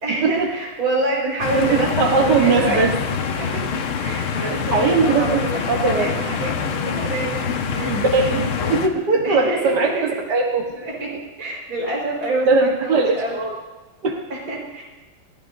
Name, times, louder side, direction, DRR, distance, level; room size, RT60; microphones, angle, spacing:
voice 1, 0.0-3.0 3.4-3.6 4.0-7.4 7.7-8.0 9.2-10.2 10.7-13.4 14.3-14.8, right 2 dB, 75° right, -2 dB, 5.3 m, -27 dB
sound 1, 1.4-8.9, left 6 dB, 80° left, 2.0 m, -25 dB
voice 2, 1.6-2.9 4.7-6.1 7.8-10.8 12.5-13.6 14.0-14.2, right 4 dB, 55° right, 0 dB, 1.8 m, -20 dB
29.0 x 14.5 x 2.7 m, 1.2 s
omnidirectional pair, 2.4 m